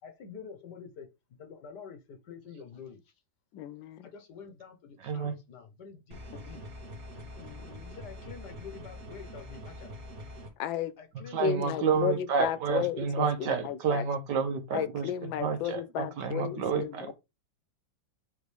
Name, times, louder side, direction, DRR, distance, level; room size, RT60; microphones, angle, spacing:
voice 1, 0.0-3.1 4.0-6.2 6.5-6.7 7.9-9.9 11.0-12.0, left 6 dB, 60° left, 1.7 m, -47 dB
voice 2, 3.5-4.1 7.4-8.0 10.6-11.0 11.4-12.1 12.4-14.0 14.7-17.1, left 10 dB, 90° left, 1.4 m, -33 dB
voice 3, 5.0-5.3 7.4-7.6 11.1-17.1, right 6 dB, 65° right, 1.5 m, -30 dB
sound 1, 6.1-10.5, left 1 dB, 35° right, 1.9 m, -44 dB
9.0 x 3.5 x 3.4 m
omnidirectional pair, 2.1 m